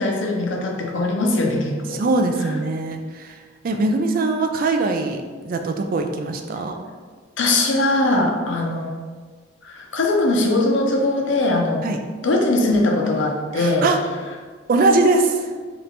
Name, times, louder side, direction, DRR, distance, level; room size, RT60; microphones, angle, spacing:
voice 1, 0.0-2.0 7.4-8.9 9.6-11.8 12.2-13.9, left 2 dB, 65° left, 1 dB, 0.6 m, -20 dB
voice 2, 1.9-6.8 11.8-12.0 13.5-14.0 14.7-15.5, right 2 dB, 45° right, 4 dB, 0.3 m, -21 dB
3.3 x 2.9 x 3.9 m, 1.5 s
head